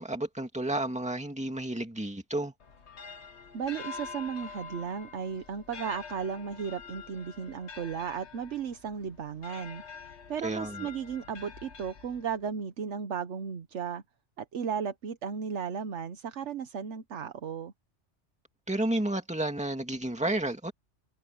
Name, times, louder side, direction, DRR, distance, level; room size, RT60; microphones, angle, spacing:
voice 1, 0.0-2.5 10.4-10.9 18.7-20.7, right 1 dB, 5° right, 2.3 m, -31 dB
sound 1, 2.6-12.5, left 5 dB, 70° left, 1.5 m, -46 dB
voice 2, 3.5-9.8 10.3-14.0 14.4-17.7, right 7 dB, 80° right, 1.3 m, -35 dB
open air
omnidirectional pair, 1.2 m